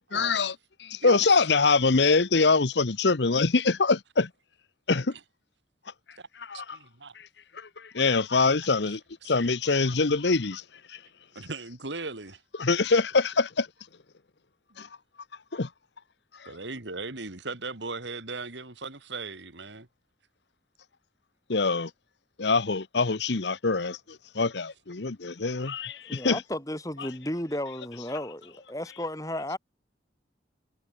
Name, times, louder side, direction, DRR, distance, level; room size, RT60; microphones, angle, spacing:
voice 1, 0.1-0.5 0.8-4.3 4.9-5.1 6.4-6.8 7.1-7.3 7.5-10.6 10.9-11.0 12.6-13.7 14.8-14.9 15.5-15.7 16.4-16.5 21.5-21.9 22.4-26.4 27.0-27.1, left 4 dB, 70° left, 1.0 m, -24 dB
voice 2, 6.5-7.1 8.9-9.0 11.3-12.4 16.5-19.9, right 3 dB, 75° right, 2.6 m, -37 dB
voice 3, 25.9-29.6, left 1 dB, 20° left, 7.7 m, -34 dB
head